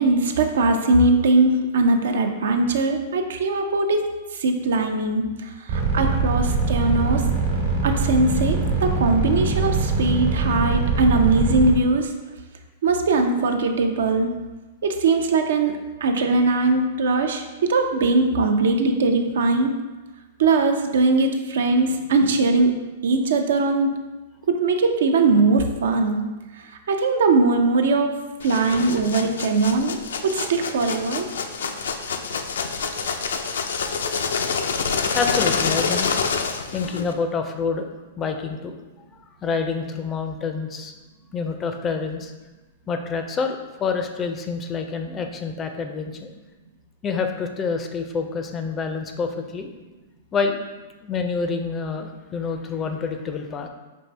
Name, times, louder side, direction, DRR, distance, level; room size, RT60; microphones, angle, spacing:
voice 1, 0.0-4.0 4.4-5.3 5.7-7.2 7.8-12.1 12.8-14.3 14.8-15.7 16.0-19.7 20.4-22.7 23.0-23.9 24.5-26.2 26.9-28.1 28.4-30.0 30.2-31.3, right 3 dB, 80° right, 5 dB, 0.5 m, -20 dB
sound 1, 5.7-11.7, right 4 dB, 50° right, 1.2 m, -22 dB
sound 2, 28.4-37.1, left 5 dB, 90° left, 0.4 m, -27 dB
voice 2, 35.0-36.1 36.7-37.9 38.2-38.7 39.4-40.9 41.3-42.3 42.9-46.3 47.0-49.7 50.3-50.6 51.0-53.7, left 5 dB, 20° left, 5 dB, 0.4 m, -27 dB
5.3 x 2.6 x 3.2 m, 1.2 s
hypercardioid pair, 145°, 0 cm